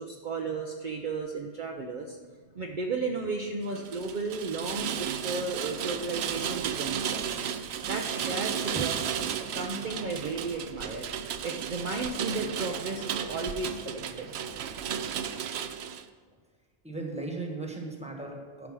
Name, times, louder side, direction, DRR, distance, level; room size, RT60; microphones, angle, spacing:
voice 1, 0.0-2.2 2.5-7.3 7.8-11.1 11.4-14.3, right 3 dB, 50° right, 1 dB, 0.8 m, -34 dB
Rain, 3.7-16.0, right 8 dB, 80° right, 0.8 m, -34 dB
voice 2, 16.8-18.7, right 3 dB, 5° right, 1 dB, 1.4 m, -37 dB
12.0 x 5.2 x 6.1 m, 1.5 s
omnidirectional pair, 1.1 m